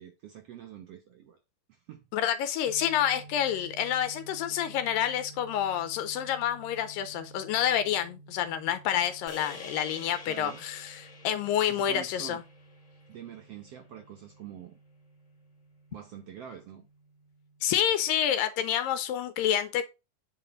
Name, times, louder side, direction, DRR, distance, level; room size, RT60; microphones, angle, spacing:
voice 1, 0.0-1.4 1.7-2.0 10.3-10.6 11.6-12.4 13.1-14.8 15.9-16.8, right 9 dB, 80° right, 1.4 m, -45 dB
voice 2, 2.1-12.4 17.6-19.9, left 10 dB, 80° left, 2.3 m, -28 dB
sound 1, 2.7-18.3, right 3 dB, 65° left, 2.2 m, -53 dB
sound 2, 9.3-13.7, left 3 dB, 40° left, 1.1 m, -48 dB
8.3 x 4.2 x 5.1 m
omnidirectional pair, 4.0 m